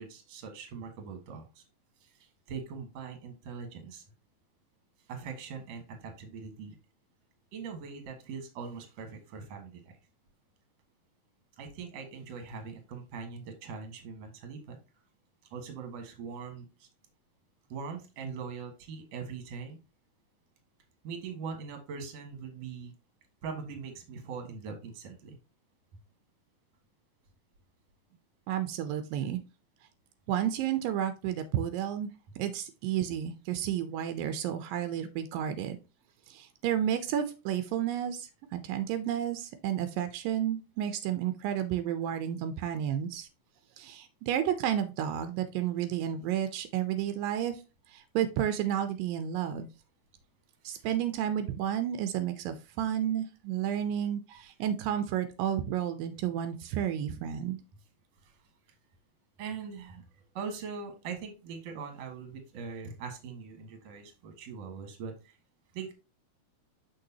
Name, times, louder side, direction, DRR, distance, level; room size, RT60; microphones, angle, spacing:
voice 1, 0.0-1.6 2.0-4.0 5.1-6.8 7.5-9.9 11.6-14.8 15.5-16.9 17.7-19.8 21.0-22.9 23.4-25.4 58.2-58.4 59.4-60.0 60.3-65.4 65.7-65.9, right 5 dB, 60° right, 5 dB, 2.4 m, -41 dB
voice 2, 28.5-29.4 30.3-32.1 32.4-35.8 36.3-43.3 43.8-47.6 47.9-49.7 50.6-57.6, right 10 dB, 85° right, 9 dB, 2.3 m, -31 dB
6.5 x 6.1 x 2.8 m, 0.30 s
omnidirectional pair, 3.9 m